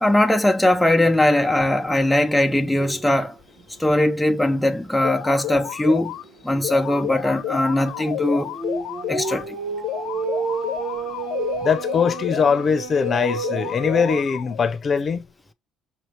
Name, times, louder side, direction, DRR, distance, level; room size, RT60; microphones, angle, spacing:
voice 1, 0.0-3.4 3.8-6.2 6.4-8.6 9.1-9.6, left 1 dB, 5° left, 0.6 m, -20 dB
sound 1, 2.8-3.1 3.6-3.7 4.1-4.2 6.2-14.2, right 5 dB, 80° right, 1.4 m, -31 dB
sound 2, 5.0-6.2 6.6-9.4 9.8-12.6 13.0-14.6, left 13 dB, 80° left, 0.7 m, -31 dB
voice 2, 11.6-15.2, left 6 dB, 40° left, 0.8 m, -21 dB
5.9 x 2.9 x 3.0 m
cardioid pair, 90°, 0 cm